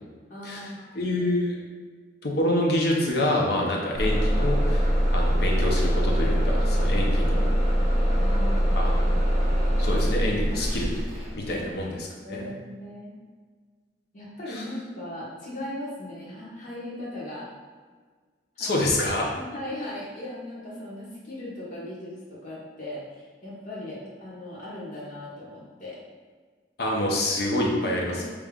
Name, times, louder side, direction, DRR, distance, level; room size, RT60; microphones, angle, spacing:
voice 1, 0.3-1.1 3.5-4.1 7.3-7.7 8.2-8.9 11.4-13.1 14.1-17.5 18.5-18.8 19.3-26.0 28.0-28.2, left 1 dB, 45° left, -7 dB, 1.4 m, -38 dB
voice 2, 0.9-1.5 2.2-4.8 5.1-7.5 8.8-9.2 9.8-10.9 11.3-12.5 14.5-14.6 18.6-19.3 26.8-28.2, left 1 dB, 65° left, -1 dB, 0.8 m, -26 dB
Bus / Engine starting, 3.9-11.7, equal, 35° right, 1.1 m, -23 dB
5.1 x 3.2 x 2.4 m, 1.5 s
head